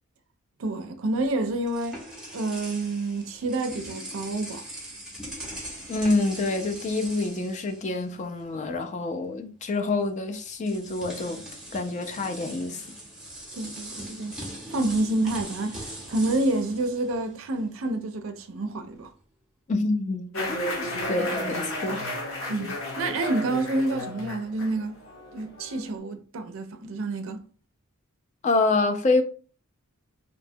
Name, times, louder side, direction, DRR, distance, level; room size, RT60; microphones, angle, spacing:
voice 1, 0.6-2.0 2.3-4.6 13.5-14.4 14.7-19.1 22.5-25.0 25.3-27.4, right 2 dB, 70° right, 0.4 m, -28 dB
sound 1, 1.2-8.4 8.7-8.9 10.0-10.1 10.6-17.7, right 1 dB, 5° right, 0.7 m, -41 dB
voice 2, 5.9-11.4 11.7-12.8 19.7-22.1 28.4-29.2, left 3 dB, 35° left, 0.3 m, -27 dB
sound 2, 20.3-26.0, left 1 dB, 70° left, 0.8 m, -33 dB
2.7 x 2.2 x 2.6 m
head